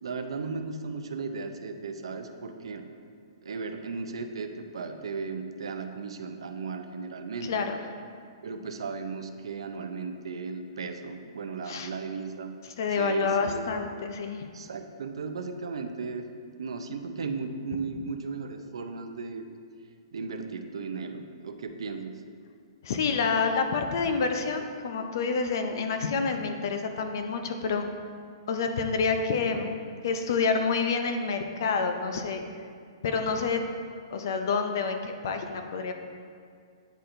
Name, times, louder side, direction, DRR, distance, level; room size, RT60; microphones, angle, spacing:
voice 1, 0.0-2.9 3.4-7.5 8.4-12.5 12.9-13.7 14.5-16.3 16.6-19.5 20.1-22.2, right 4 dB, 80° right, 6 dB, 0.5 m, -36 dB
voice 2, 7.4-7.8 11.7-11.9 12.8-14.5 22.8-27.9 28.5-29.7 30.0-32.4 33.0-33.6 34.1-35.9, left 5 dB, 45° left, 6 dB, 0.5 m, -28 dB
9.1 x 4.2 x 2.6 m, 2.2 s
hypercardioid pair, 175°, 3 cm